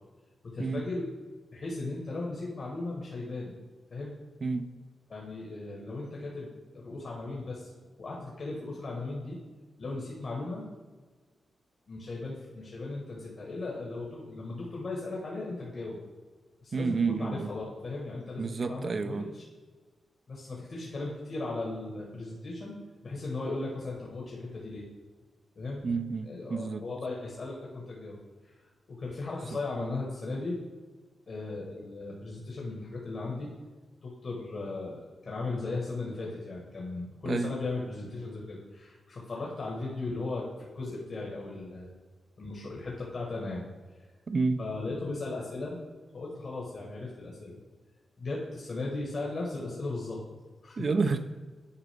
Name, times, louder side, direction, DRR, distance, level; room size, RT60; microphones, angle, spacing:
voice 1, 0.5-1.1 1.5-3.5 3.9-4.1 5.1-7.7 8.0-9.4 9.8-10.7 11.9-16.0 16.6-19.4 20.3-22.8 23.0-24.8 25.5-25.9 26.2-28.2 28.4-28.5 28.9-30.6 31.3-33.5 34.0-41.9 42.4-43.6 44.6-45.8 46.1-47.6 48.2-50.2 50.6-50.7, left 2 dB, 50° left, 1.4 m, -37 dB
voice 2, 16.7-17.5 18.4-19.3 25.8-26.8 37.3-37.5 44.3-44.6 50.8-51.2, right 4 dB, 45° right, 0.4 m, -29 dB
9.7 x 4.9 x 3.4 m
wide cardioid pair, 115°, 0 cm